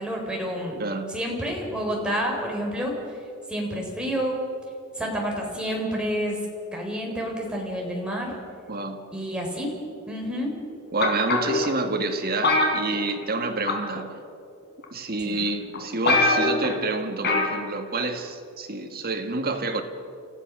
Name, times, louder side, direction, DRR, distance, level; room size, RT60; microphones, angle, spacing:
voice 1, 0.0-0.8 1.1-2.9 3.5-4.4 5.0-6.4 6.7-8.4 9.1-9.7 10.1-10.5 15.2-15.4, equal, 5° right, -1 dB, 4.3 m, -29 dB
voice 2, 0.8-1.1 8.7-9.0 10.9-14.1 14.9-19.8, right 3 dB, 45° right, 4 dB, 1.9 m, -28 dB
sound 1, 11.0-11.7 12.4-13.4 13.7-14.0 14.8-14.9 15.5-15.6 15.7-15.8 16.1-16.7 17.2-17.6 17.9-18.0, left 2 dB, 50° left, 3.7 m, -22 dB
29.5 x 14.5 x 6.2 m, 2.4 s
head